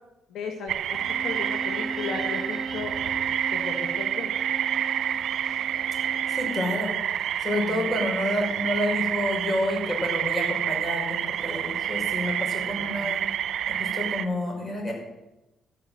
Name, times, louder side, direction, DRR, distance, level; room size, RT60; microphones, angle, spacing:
voice 1, 0.3-2.9 3.5-4.3 7.7-7.9 12.7-13.3, left 4 dB, 80° left, 3 dB, 1.9 m, -36 dB
sound 1, 0.7-14.3, right 10 dB, 70° right, 0.8 m, -28 dB
Bowed string instrument, 0.9-6.7, right 2 dB, 5° left, 2.6 m, -38 dB
voice 2, 6.3-6.9 7.4-14.9, left 1 dB, 30° left, 0 dB, 6.3 m, -29 dB
13.5 x 9.2 x 8.1 m, 0.98 s
cardioid pair, 90°, 0 cm